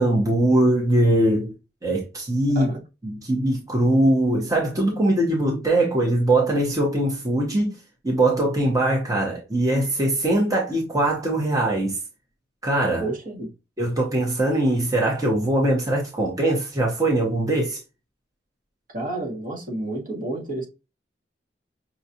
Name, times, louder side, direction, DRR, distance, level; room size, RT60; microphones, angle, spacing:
voice 1, 0.0-1.5 1.8-2.7 3.0-7.7 8.0-12.0 12.6-13.0 13.8-17.8, right 1 dB, 20° right, 1.0 m, -21 dB
voice 2, 13.0-13.5 18.9-20.7, right 2 dB, 50° right, 1.6 m, -30 dB
5.9 x 2.4 x 2.8 m
head